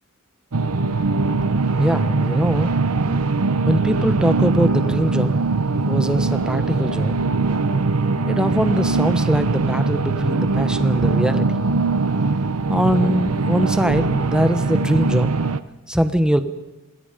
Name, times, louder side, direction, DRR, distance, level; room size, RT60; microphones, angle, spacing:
sound 1, 0.5-15.6, right 3 dB, 80° right, 0.8 m, -21 dB
voice 1, 1.8-2.7 3.6-5.3 5.9-7.2 8.3-11.6 12.7-15.3 15.9-16.4, equal, 5° right, 9 dB, 1.1 m, -21 dB
26.5 x 19.5 x 5.2 m, 1.1 s
head